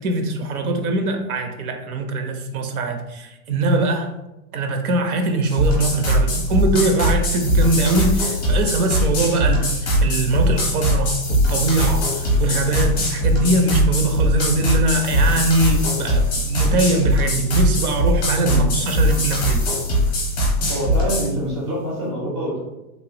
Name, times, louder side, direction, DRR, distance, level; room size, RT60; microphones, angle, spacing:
voice 1, 0.0-4.1 4.5-19.6, right 2 dB, 80° right, 5 dB, 0.7 m, -22 dB
sound 1, 5.5-21.3, equal, 25° left, 0.6 m, -20 dB
voice 2, 18.2-18.7 20.7-22.6, equal, 20° right, -6 dB, 0.4 m, -26 dB
3.0 x 2.2 x 2.7 m, 0.95 s
hypercardioid pair, 170°, 44 cm